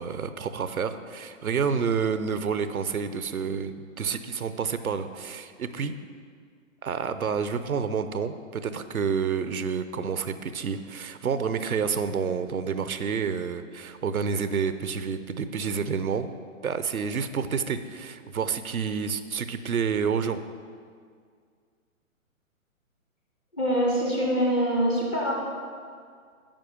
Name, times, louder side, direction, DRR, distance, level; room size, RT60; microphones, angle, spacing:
voice 1, 0.0-5.9 6.8-16.3 16.6-20.4, right 6 dB, 90° right, 11 dB, 0.7 m, -29 dB
voice 2, 23.5-25.3, equal, 10° left, -4 dB, 0.4 m, -24 dB
9.0 x 5.5 x 6.8 m, 2.1 s
hypercardioid pair, 135°, 42 cm